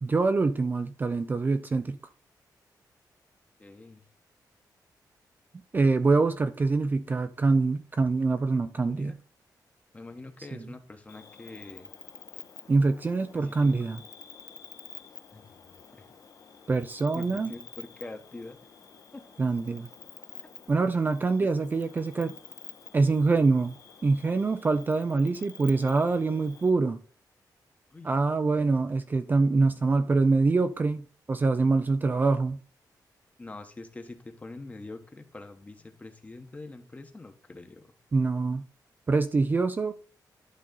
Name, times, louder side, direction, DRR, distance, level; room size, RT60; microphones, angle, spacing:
voice 1, 0.0-2.0 5.7-9.2 10.5-10.6 12.7-14.0 16.7-17.5 19.4-19.9 20.7-22.3 22.9-23.7 24.0-27.0 28.0-32.6 38.1-38.7 39.1-39.9, right 3 dB, 25° right, 0.5 m, -25 dB
voice 2, 3.6-4.0 8.8-9.2 9.9-11.9 13.3-13.7 15.3-16.1 17.1-18.6 19.1-19.2 20.4-20.5 27.9-28.1 33.4-37.9, left 2 dB, 20° left, 1.1 m, -44 dB
Cricket, 11.1-26.7, left 6 dB, 50° left, 1.1 m, -49 dB
11.5 x 4.0 x 3.9 m
wide cardioid pair, 155°, 7 cm